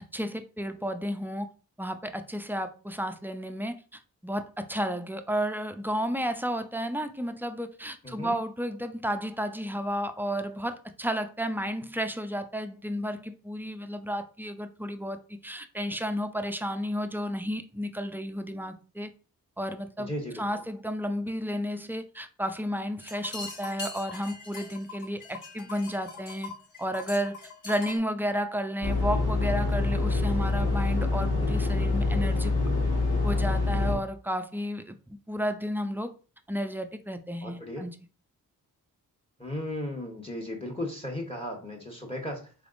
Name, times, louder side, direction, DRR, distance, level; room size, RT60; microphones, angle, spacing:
voice 1, 0.0-1.5 1.8-19.1 19.6-26.5 26.8-27.4 27.6-32.5 33.2-35.0 35.3-36.1 36.5-38.0, equal, 5° right, 8 dB, 0.5 m, -32 dB
voice 2, 8.0-8.4 20.0-20.5 37.4-37.9 39.4-42.5, left 1 dB, 15° left, 1 dB, 1.3 m, -35 dB
sound 1, 23.0-28.0, left 3 dB, 60° left, 1.6 m, -42 dB
sound 2, 28.8-34.0, left 3 dB, 85° left, 1.5 m, -26 dB
4.1 x 3.3 x 2.5 m, 0.36 s
cardioid pair, 45°, 36 cm